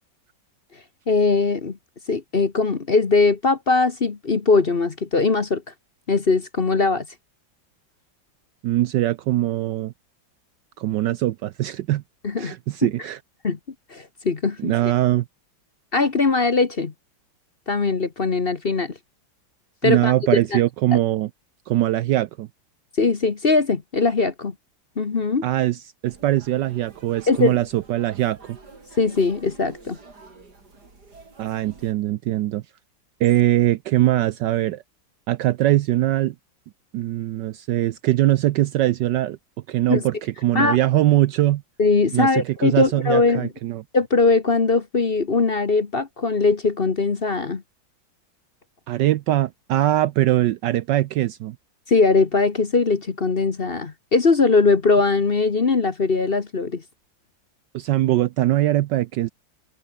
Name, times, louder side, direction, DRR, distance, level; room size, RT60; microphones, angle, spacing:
voice 1, 1.1-1.8 2.1-5.6 6.1-7.1 12.2-12.5 12.8-12.9 13.4-13.6 13.9-14.7 15.9-16.9 17.7-19.0 19.8-20.1 20.5-20.6 23.0-24.5 25.0-25.4 27.3-27.6 29.0-30.0 39.9-40.0 40.5-40.8 41.8-43.5 43.9-47.6 51.9-56.8, left 4 dB, 35° left, 1.2 m, -20 dB
voice 2, 8.6-9.9 10.8-12.0 12.4-13.2 14.6-15.3 19.8-21.3 21.7-22.5 25.4-28.6 31.4-32.6 33.2-34.8 35.3-36.3 36.9-39.4 39.7-41.6 42.1-43.8 48.9-51.6 57.7-59.3, right 14 dB, 70° right, 1.2 m, -21 dB
sound 1, 26.0-31.9, right 3 dB, 55° right, 4.6 m, -48 dB
open air
omnidirectional pair, 2.1 m